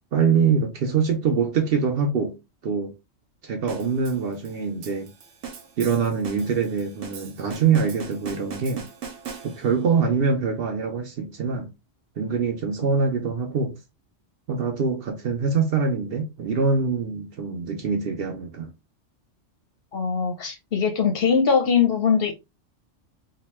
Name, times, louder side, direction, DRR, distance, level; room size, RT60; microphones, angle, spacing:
voice 1, 0.1-2.4 2.6-2.9 3.4-5.1 5.8-8.9 9.4-11.7 12.2-13.7 14.5-18.7, right 5 dB, 60° right, 0.7 m, -24 dB
sound 1, 3.7-9.9, right 6 dB, 80° right, 1.0 m, -40 dB
voice 2, 19.9-22.3, left 6 dB, 60° left, 0.7 m, -21 dB
2.9 x 2.1 x 2.9 m
omnidirectional pair, 1.3 m